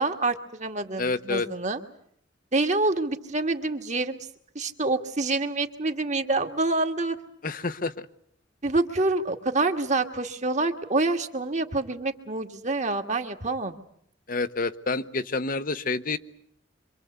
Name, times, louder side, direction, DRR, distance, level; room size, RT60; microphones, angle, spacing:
voice 1, 0.0-1.8 2.5-4.2 4.6-7.2 8.6-13.7, right 2 dB, 40° right, 6 dB, 2.1 m, -27 dB
voice 2, 1.0-1.5 7.4-8.1 14.3-16.2, left 3 dB, 45° left, 10 dB, 1.0 m, -28 dB
26.0 x 25.0 x 8.3 m, 0.68 s
head